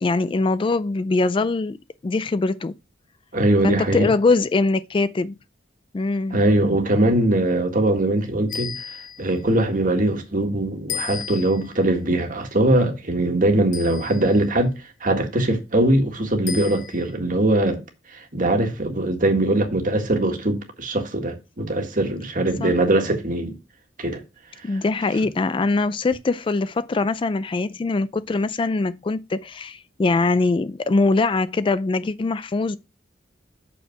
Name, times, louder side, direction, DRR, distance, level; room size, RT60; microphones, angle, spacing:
voice 1, 0.0-1.8 2.0-2.7 3.6-5.3 5.9-6.4 22.6-22.7 24.6-32.8, left 3 dB, 30° left, 0.3 m, -22 dB
voice 2, 3.3-4.1 6.3-17.8 18.1-23.6 24.0-24.2 24.6-24.8, right 1 dB, 45° right, 1.7 m, -21 dB
sound 1, 8.5-9.4 10.9-11.7 13.7-14.4 16.5-17.1, left 8 dB, 45° left, 1.1 m, -34 dB
6.6 x 5.4 x 5.8 m
head